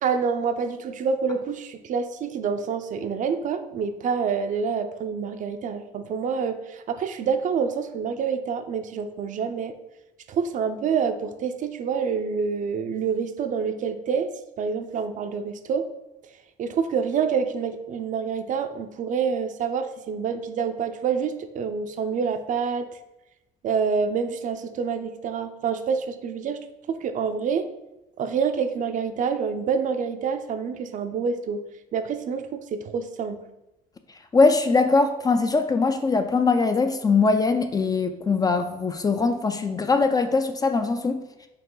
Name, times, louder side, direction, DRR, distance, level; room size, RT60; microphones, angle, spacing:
voice 1, 0.0-9.7 10.3-14.3 14.6-15.9 16.6-22.9 23.6-26.6 26.9-27.7 28.2-31.6 31.9-33.4, right 6 dB, 50° right, 8 dB, 0.4 m, -27 dB
voice 2, 34.3-41.2, left 4 dB, 20° left, 8 dB, 0.3 m, -21 dB
4.7 x 2.8 x 3.8 m, 0.94 s
cardioid pair, 110°, 17 cm